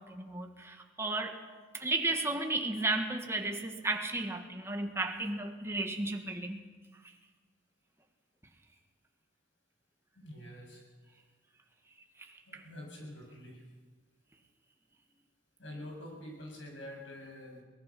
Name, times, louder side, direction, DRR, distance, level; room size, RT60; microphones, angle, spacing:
voice 1, 0.0-1.4 1.7-6.6 12.2-12.6, right 2 dB, 15° right, 3 dB, 1.7 m, -34 dB
voice 2, 10.2-10.8 12.5-13.6 15.6-17.6, left 1 dB, 75° left, 0 dB, 7.1 m, -46 dB
22.5 x 19.5 x 6.0 m, 1.3 s
head